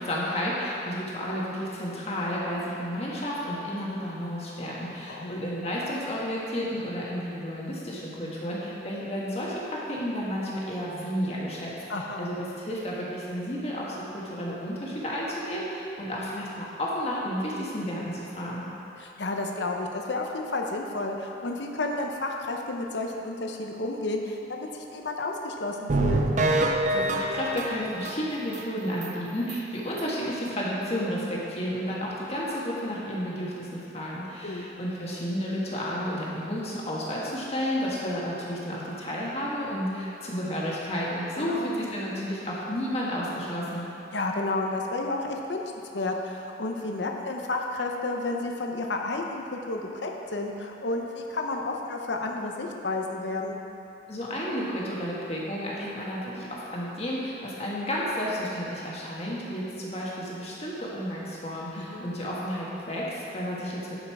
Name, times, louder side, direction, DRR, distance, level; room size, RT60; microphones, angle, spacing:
voice 1, 0.0-11.7 12.2-18.7 26.9-43.8 54.1-64.0, equal, 35° left, -5 dB, 1.6 m, -32 dB
voice 2, 5.1-5.5 11.9-12.3 19.0-26.2 34.4-34.7 41.3-41.8 44.1-45.6 45.9-53.6 61.8-62.2, left 2 dB, 65° left, 1 dB, 0.8 m, -31 dB
sound 1, 25.9-28.6 29.0-29.1 29.5-29.6 30.0-30.1, right 2 dB, 40° right, 0.5 m, -26 dB
11.5 x 5.5 x 4.8 m, 2.9 s
head